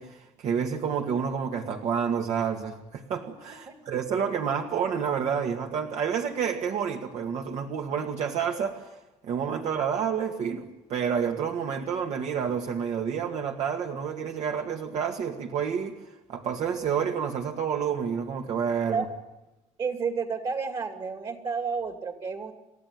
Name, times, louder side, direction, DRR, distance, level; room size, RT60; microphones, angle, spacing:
voice 1, 0.0-8.9 9.2-16.0 16.3-19.0, right 7 dB, 70° right, 2 dB, 2.0 m, -29 dB
voice 2, 19.8-22.5, right 5 dB, 40° right, 4 dB, 2.6 m, -30 dB
29.5 x 14.5 x 9.2 m, 1.0 s
cardioid pair, 140°, 12 cm